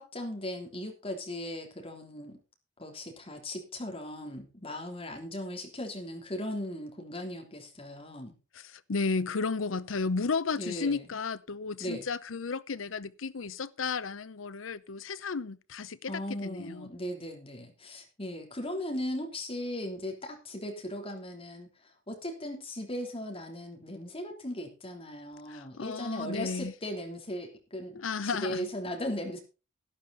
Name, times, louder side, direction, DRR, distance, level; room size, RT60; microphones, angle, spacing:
voice 1, 0.0-2.4 2.8-8.3 10.6-11.0 11.8-12.0 16.1-21.7 22.1-29.4, left 1 dB, 30° left, 3.3 m, -38 dB
voice 2, 8.5-16.9 25.5-26.7 27.9-28.7, left 4 dB, 85° left, 0.7 m, -33 dB
12.0 x 11.5 x 4.0 m
head